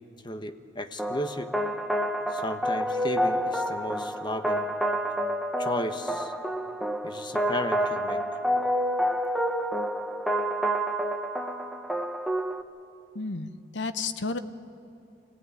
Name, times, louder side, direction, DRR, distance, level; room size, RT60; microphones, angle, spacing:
voice 1, 0.2-1.5 2.3-4.8 5.6-6.3 7.0-8.2, left 1 dB, 25° left, 8 dB, 1.1 m, -34 dB
sound 1, 1.0-12.6, equal, ahead, 0.8 m, -28 dB
voice 2, 13.1-14.4, left 3 dB, 70° left, 10 dB, 1.0 m, -32 dB
26.0 x 15.5 x 9.8 m, 2.8 s
head